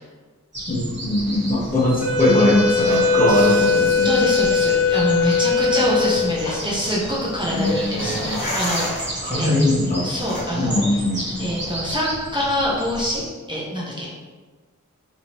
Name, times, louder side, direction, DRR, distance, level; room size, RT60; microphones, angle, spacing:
sound 1, 0.5-13.3, right 1 dB, 35° right, 1.0 m, -34 dB
voice 1, 0.7-4.1 7.5-8.4 9.2-10.1 10.6-11.5, left 1 dB, 25° left, -5 dB, 0.7 m, -21 dB
sound 2, 1.1-11.9, left 1 dB, 85° left, 1.0 m, -35 dB
Wind instrument woodwind instrument, 2.0-6.6, left 5 dB, 80° right, 1.1 m, -20 dB
voice 2, 3.3-9.0 9.4-9.5 10.0-10.8 11.4-13.2 13.5-14.2, equal, 15° right, -7 dB, 0.6 m, -25 dB
2.8 x 2.8 x 2.8 m, 1.4 s
wide cardioid pair, 70°, 32 cm